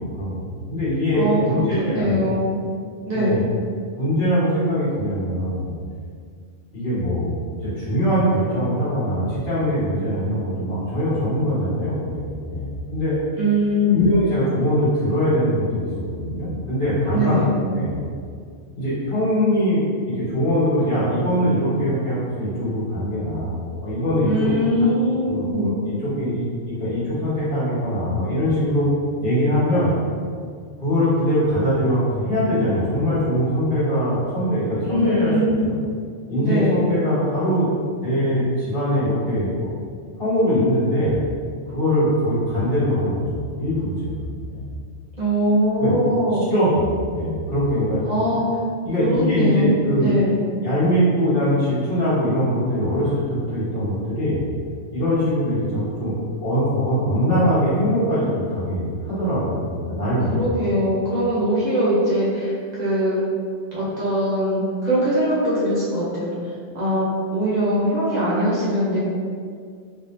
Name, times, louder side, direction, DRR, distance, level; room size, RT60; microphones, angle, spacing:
voice 1, 0.0-2.3 3.1-3.4 4.0-5.7 6.7-12.2 12.5-13.2 13.9-17.4 17.7-17.9 18.8-19.8 20.1-24.5 24.8-24.9 25.3-28.9 29.2-29.9 30.8-35.3 35.6-35.7 36.3-37.7 38.0-39.7 40.2-41.2 41.7-44.1 44.5-44.6 45.8-45.9 46.3-46.8 47.1-48.0 48.8-50.1 50.6-54.4 54.9-56.1 56.4-60.5, equal, 45° left, -12 dB, 1.6 m, -22 dB
voice 2, 1.1-2.6 3.1-3.4 13.4-14.0 17.1-17.5 24.2-25.7 34.8-35.6 36.4-36.8 45.2-46.4 48.1-48.6 49.0-50.4 60.1-63.2 63.7-66.3 66.7-69.0, equal, 45° right, -8 dB, 0.5 m, -22 dB
3.2 x 2.6 x 2.6 m, 2.1 s
omnidirectional pair, 1.3 m